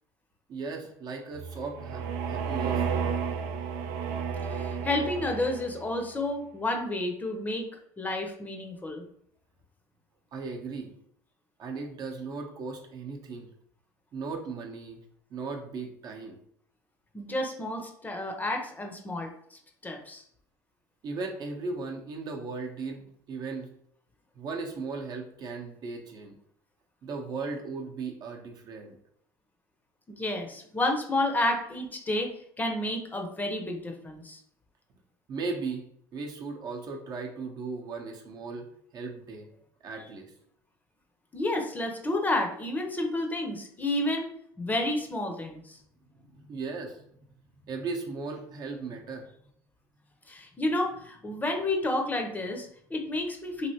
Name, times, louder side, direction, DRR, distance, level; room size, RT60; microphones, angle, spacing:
voice 1, 0.5-2.9 10.3-10.9 11.6-13.5 14.1-15.0 15.3-16.4 21.0-23.7 24.4-26.4 27.0-28.9 35.3-35.9 36.1-39.5 39.8-40.3 46.2-47.0 47.6-49.3, right 4 dB, 45° right, 2 dB, 0.7 m, -37 dB
sound 1, 1.3-6.0, right 6 dB, 80° right, 0.5 m, -32 dB
voice 2, 4.4-7.7 8.0-9.0 17.1-20.2 30.1-34.4 41.3-44.3 44.6-45.8 50.3-53.7, left 1 dB, 15° left, 3 dB, 0.7 m, -30 dB
3.1 x 2.7 x 2.8 m, 0.67 s
supercardioid pair, 100°, 10 cm